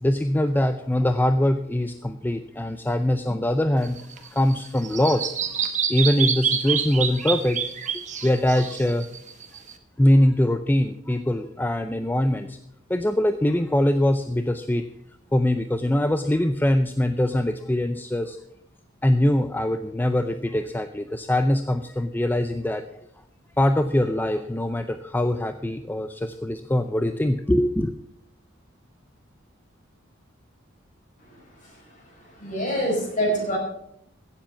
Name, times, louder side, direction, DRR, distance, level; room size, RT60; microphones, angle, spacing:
voice 1, 0.0-4.0 4.3-5.4 5.9-7.7 8.2-9.1 10.0-12.6 12.9-14.9 15.3-18.4 19.0-22.8 23.6-27.9, left 1 dB, 10° left, 9 dB, 0.5 m, -22 dB
Bird vocalization bird call bird song, 3.8-9.7, right 7 dB, 40° right, 1.3 m, -27 dB
voice 2, 32.4-33.6, equal, 40° left, -1 dB, 5.7 m, -25 dB
16.0 x 7.6 x 6.1 m, 0.73 s
head